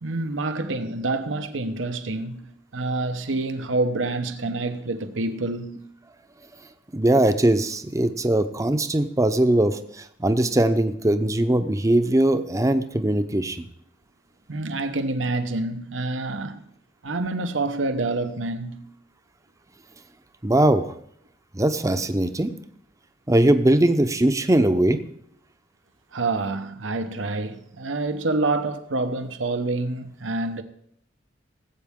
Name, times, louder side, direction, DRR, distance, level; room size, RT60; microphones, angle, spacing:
voice 1, 0.0-5.9 14.5-16.6 17.0-18.9 26.1-30.6, right 2 dB, 85° right, 1.0 m, -27 dB
voice 2, 6.9-13.6 20.4-20.9 21.5-22.5 23.3-25.0, right 1 dB, 15° right, 0.7 m, -20 dB
18.5 x 8.3 x 3.7 m
head